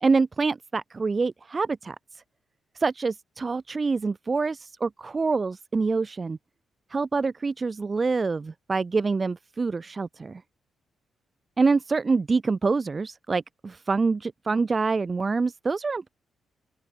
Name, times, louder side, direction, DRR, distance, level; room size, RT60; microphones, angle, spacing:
voice 1, 0.0-2.0 2.7-6.4 6.9-10.4 11.6-16.1, right 4 dB, 20° right, 1.2 m, -26 dB
open air
wide cardioid pair, 180°, 0 cm